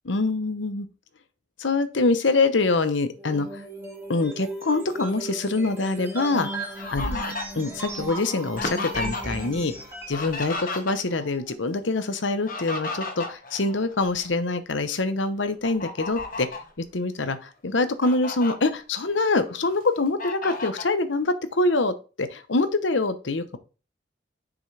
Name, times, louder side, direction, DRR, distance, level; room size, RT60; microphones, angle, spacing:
voice 1, 0.0-0.9 1.6-3.6 4.1-6.5 6.9-7.2 7.5-9.7 10.1-16.5 16.9-23.6, left 3 dB, 85° left, 11 dB, 0.9 m, -25 dB
sound 1, 3.2-10.3, right 2 dB, 15° right, 2.0 m, -36 dB
Fowl, 6.2-9.5 9.8-11.3 12.2-14.3 14.8-15.0 15.6-16.7 17.3-17.4 17.8-18.5 19.1-19.8 20.2-20.9, left 3 dB, 50° left, 1.4 m, -34 dB
7.3 x 6.1 x 3.4 m, 0.34 s
head